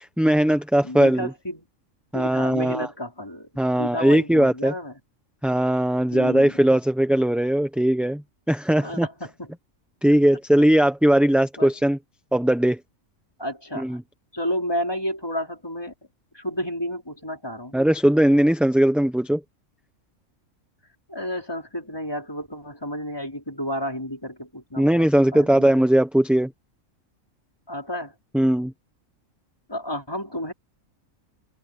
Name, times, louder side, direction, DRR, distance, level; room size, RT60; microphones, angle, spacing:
voice 1, 0.0-1.3 2.1-2.9 3.6-4.7 5.4-8.2 8.5-9.1 10.0-12.0 12.3-12.8 13.8-14.0 17.7-19.4 24.8-26.5 28.3-28.7, right 1 dB, ahead, 0.8 m, -19 dB
voice 2, 0.8-1.7 2.1-3.5 3.8-4.9 6.1-6.7 8.8-9.5 11.6-11.9 13.4-14.0 14.3-15.9 16.3-17.7 21.1-25.1 25.3-25.8 27.7-28.1 29.7-30.5, equal, 15° left, 4.9 m, -31 dB
omnidirectional pair, 1.4 m